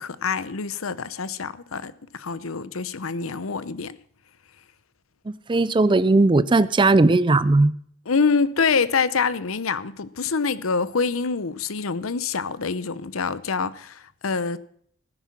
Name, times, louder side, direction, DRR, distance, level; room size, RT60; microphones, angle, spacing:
voice 1, 0.0-4.0 8.1-14.6, left 5 dB, 85° left, 0.8 m, -26 dB
voice 2, 5.3-7.7, right 2 dB, 25° right, 0.5 m, -18 dB
16.0 x 9.8 x 5.9 m
head